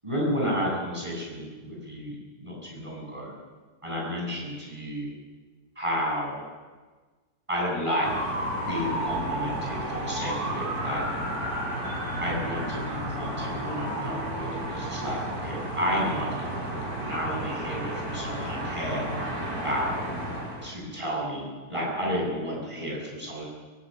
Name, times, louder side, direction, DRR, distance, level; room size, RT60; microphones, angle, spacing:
voice 1, 0.0-3.3 3.8-5.1 5.7-6.4 7.5-8.1 8.7-11.0 12.2-19.0 19.5-19.9 20.6-23.5, equal, 15° right, -3 dB, 8.2 m, -31 dB
sound 1, 8.0-20.7, right 1 dB, 85° right, 5.6 m, -32 dB
24.0 x 14.0 x 9.1 m, 1.4 s
omnidirectional pair, 1.8 m